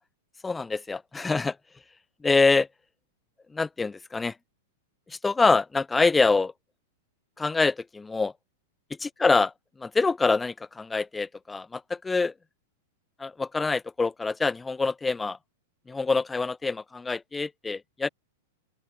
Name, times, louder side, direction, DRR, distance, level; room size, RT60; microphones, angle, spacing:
voice 1, 0.4-1.5 2.2-2.7 3.5-4.3 5.2-6.5 7.4-8.3 9.0-9.5 9.8-12.3 13.2-15.4 15.9-18.1, left 4 dB, 10° left, 0.8 m, -25 dB
open air
hypercardioid pair, 135°, 0 cm